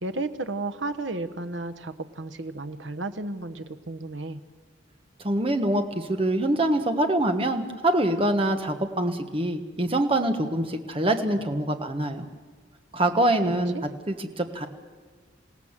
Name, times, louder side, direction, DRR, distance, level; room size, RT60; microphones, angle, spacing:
voice 1, 0.0-4.4 13.7-13.8, right 2 dB, 75° right, 10 dB, 1.1 m, -33 dB
voice 2, 5.2-12.3 12.9-13.7 14.1-14.7, right 1 dB, 30° right, 6 dB, 1.4 m, -25 dB
27.5 x 17.0 x 7.4 m, 1.5 s
head